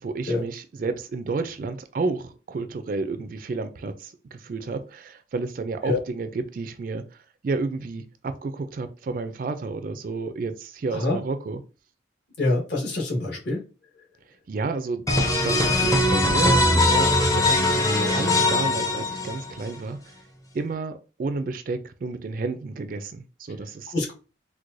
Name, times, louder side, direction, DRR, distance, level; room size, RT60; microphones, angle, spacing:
voice 1, 0.0-7.0 7.4-11.6 14.5-15.0 15.4-20.1 20.5-23.9, right 3 dB, 45° right, 0.3 m, -31 dB
voice 2, 12.4-13.6 23.9-24.1, left 2 dB, 65° left, 1.4 m, -25 dB
sound 1, 15.1-19.7, left 1 dB, 20° left, 0.5 m, -21 dB
4.5 x 2.1 x 2.5 m
head